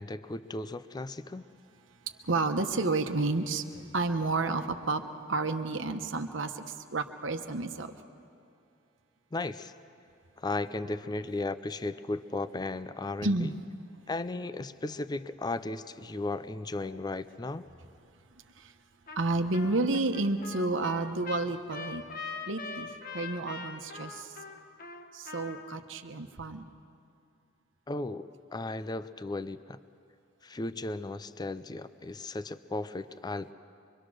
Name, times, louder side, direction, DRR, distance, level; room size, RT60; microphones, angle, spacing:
voice 1, 0.0-1.5 9.3-9.7 10.4-13.5 14.1-17.7 27.9-29.8 30.4-33.5, left 2 dB, 20° left, 13 dB, 0.5 m, -35 dB
voice 2, 2.2-3.6 3.9-5.0 5.3-7.9 13.2-13.5 19.2-22.0 22.5-24.3 25.1-26.7, right 3 dB, 80° right, 6 dB, 1.1 m, -30 dB
Trumpet, 19.1-19.3 19.5-25.7, left 4 dB, 50° left, 1.5 m, -42 dB
24.5 x 23.5 x 6.3 m, 2.5 s
head